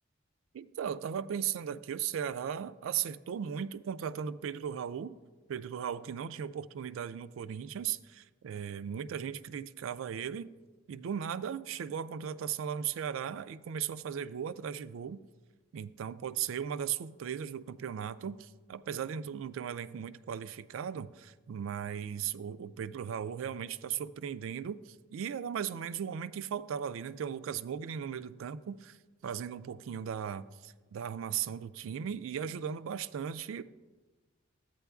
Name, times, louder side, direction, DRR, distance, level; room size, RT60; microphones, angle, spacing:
voice 1, 0.5-5.2 5.5-10.5 10.9-15.2 15.7-29.0 29.2-33.6, right 8 dB, 85° right, 0.3 m, -37 dB
13.5 x 8.9 x 2.3 m
head